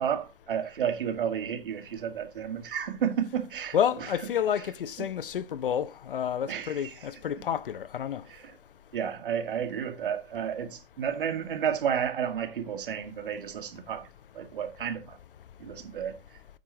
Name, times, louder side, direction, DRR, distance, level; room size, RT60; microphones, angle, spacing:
voice 1, 0.0-3.8 6.5-6.7 8.3-8.4 8.9-14.1 14.3-15.2 15.6-16.2, right 8 dB, 60° right, 2.2 m, -31 dB
voice 2, 3.7-8.2, left 9 dB, 65° left, 1.0 m, -29 dB
9.5 x 8.5 x 4.1 m
figure-of-eight pair, 125°, 30 cm